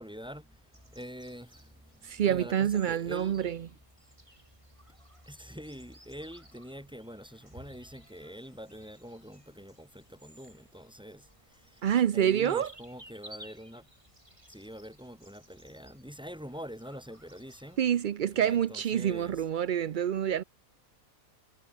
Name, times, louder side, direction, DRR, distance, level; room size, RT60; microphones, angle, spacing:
voice 1, 0.0-3.6 5.2-11.9 12.1-13.9 14.5-17.8 18.3-19.4, equal, 5° right, 6.3 m, -45 dB
sound 1, 0.7-18.1, right 1 dB, 20° right, 6.9 m, -57 dB
voice 2, 2.0-3.6 11.8-12.7 17.8-20.4, right 9 dB, 70° right, 0.4 m, -27 dB
omnidirectional pair, 1.5 m